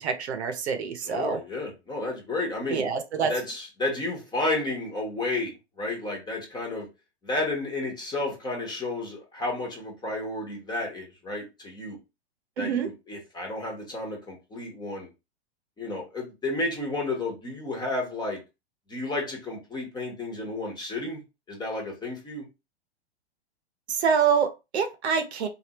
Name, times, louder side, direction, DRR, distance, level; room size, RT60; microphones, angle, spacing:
voice 1, 0.0-1.4 2.7-3.3 12.6-12.9 23.9-25.5, right 6 dB, 70° right, 7 dB, 0.9 m, -26 dB
voice 2, 1.1-2.8 3.3-6.9 7.2-12.0 12.6-15.1 15.8-18.4 18.9-21.2 21.5-22.4, left 2 dB, 10° left, -1 dB, 1.2 m, -32 dB
3.4 x 2.6 x 2.9 m, 0.26 s
hypercardioid pair, 120°, 34 cm